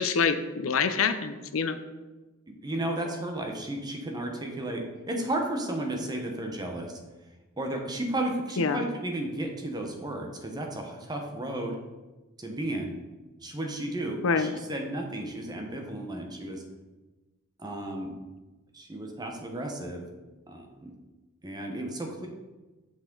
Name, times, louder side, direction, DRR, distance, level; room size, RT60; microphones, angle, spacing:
voice 1, 0.0-1.8 8.6-8.8 14.2-14.5, left 5 dB, 75° left, 10 dB, 0.6 m, -26 dB
voice 2, 2.5-7.0 7.6-11.8 12.4-12.9 13.4-16.6 17.6-18.1 18.7-20.0 20.5-20.9 21.4-22.3, right 1 dB, 20° right, 2 dB, 1.0 m, -33 dB
7.2 x 6.1 x 3.8 m, 1.2 s
head